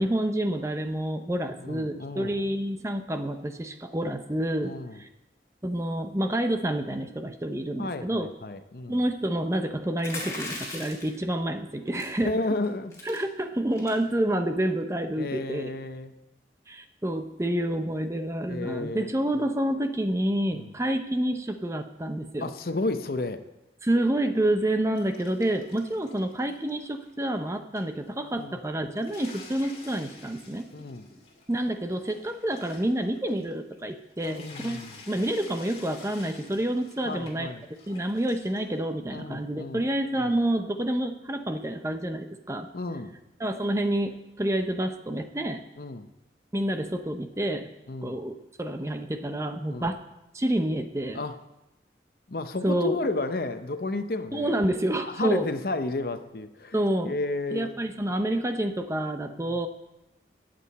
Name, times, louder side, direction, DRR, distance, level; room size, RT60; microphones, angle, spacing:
voice 1, 0.0-5.1 5.6-8.3 8.9-12.4 13.0-15.7 16.7-22.5 23.8-30.7 31.5-37.5 37.9-42.7 43.4-44.1 44.4-45.6 46.5-47.7 48.0-50.0 50.3-51.2 52.6-52.9 54.3-55.5 56.7-57.1 57.5-59.7, right 1 dB, 15° right, 7 dB, 0.6 m, -28 dB
voice 2, 1.6-2.4 4.6-5.0 7.8-9.0 12.2-13.0 15.2-16.1 18.5-19.4 20.5-20.7 22.4-23.4 28.3-28.6 30.7-31.1 34.2-35.0 37.0-37.6 39.1-39.8 40.2-40.3 42.7-43.1 45.8-46.1 47.9-48.2 49.7-49.9 51.1-51.3 52.3-54.6 55.1-57.7 59.4-59.6, left 2 dB, 55° left, 9 dB, 0.7 m, -32 dB
sound 1, 10.0-11.2 11.9-12.2 12.6-12.7 12.9-13.2 13.7-14.0, left 2 dB, 15° left, 3.6 m, -37 dB
sound 2, 24.9-27.5 27.8-27.9 28.4-28.5 28.8-38.8, left 3 dB, 35° left, 2.2 m, -50 dB
22.0 x 7.8 x 4.2 m, 0.96 s
head